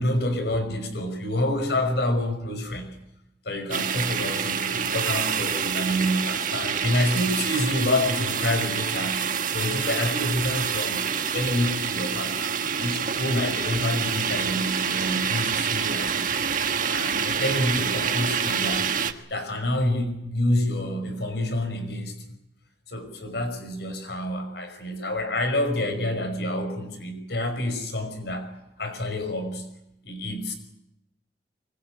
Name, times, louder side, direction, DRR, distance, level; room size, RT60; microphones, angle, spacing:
voice 1, 0.0-3.0 3.4-9.3 9.5-12.5 12.8-16.3 16.9-18.9 19.3-22.1 22.9-28.5 28.8-29.7 30.0-30.5, left 1 dB, 70° left, 8 dB, 5.5 m, -28 dB
sound 1, 3.7-19.1, right 7 dB, 50° right, 1.5 m, -27 dB
24.0 x 22.5 x 9.0 m, 0.83 s
head